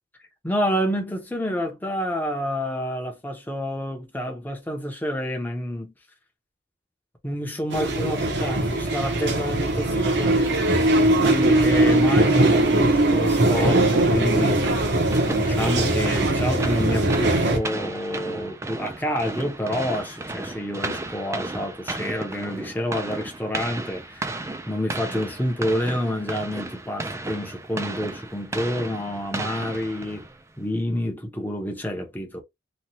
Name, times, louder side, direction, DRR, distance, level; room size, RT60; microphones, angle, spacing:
voice 1, 0.4-5.9 7.2-10.6 11.2-14.7 15.2-30.3 30.6-32.4, equal, 10° left, 0.8 m, -28 dB
sound 1, 7.7-17.6, right 2 dB, 60° right, 0.8 m, -20 dB
sound 2, 13.7-30.5, right 2 dB, 15° right, 0.4 m, -34 dB
3.0 x 2.3 x 2.7 m
head